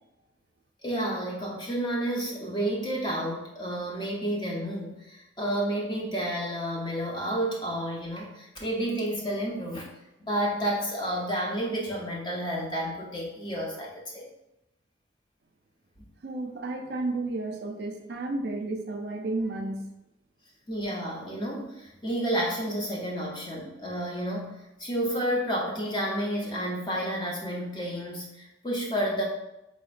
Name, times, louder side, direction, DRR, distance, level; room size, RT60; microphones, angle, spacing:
voice 1, 0.8-9.9 10.3-14.3 20.7-29.2, right 1 dB, 25° left, -2 dB, 0.7 m, -30 dB
voice 2, 16.2-19.9, right 2 dB, 60° right, 3 dB, 0.4 m, -32 dB
4.1 x 2.8 x 2.4 m, 0.90 s
head